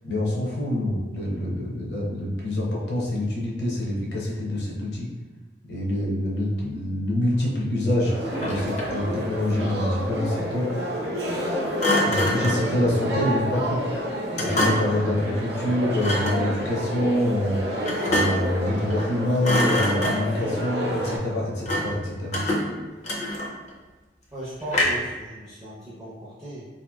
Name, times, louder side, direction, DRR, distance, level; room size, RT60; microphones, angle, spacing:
voice 1, 0.0-5.1 5.7-10.7 12.1-13.8 14.4-22.4, left 1 dB, 70° left, -4 dB, 0.7 m, -26 dB
sound 1, 8.0-21.2, equal, 70° right, 0.6 m, -29 dB
Thump thud, 8.2-9.1 11.8-12.7 14.4-15.0 16.0-16.4 17.8-18.5 18.9-19.1 19.4-20.4 21.6-22.0 22.3-23.7 24.7-25.2, left 1 dB, 40° left, 0.4 m, -25 dB
voice 2, 24.3-26.6, right 1 dB, 15° right, -9 dB, 0.5 m, -37 dB
2.8 x 2.6 x 2.3 m, 1.2 s
head